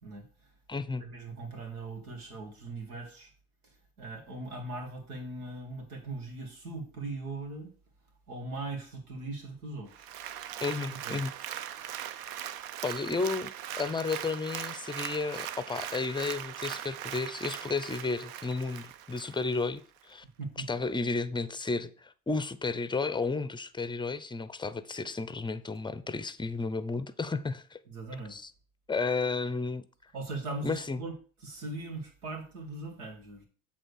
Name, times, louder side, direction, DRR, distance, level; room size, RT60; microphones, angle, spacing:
voice 1, 0.0-0.5 1.0-3.3 3.6-7.7 8.3-10.1 11.0-11.2 20.4-20.7 27.9-28.4 30.1-31.2 31.4-33.4, right 2 dB, 90° right, 1.9 m, -40 dB
voice 2, 0.7-1.0 10.6-11.3 12.8-13.5 13.8-20.2 20.7-27.8 28.3-28.5 28.9-29.8 30.6-31.0, left 4 dB, 10° left, 0.6 m, -32 dB
Applause, 9.9-19.7 20.1-20.2, right 11 dB, 55° right, 0.7 m, -40 dB
7.8 x 3.4 x 6.4 m
hypercardioid pair, 70°, 43 cm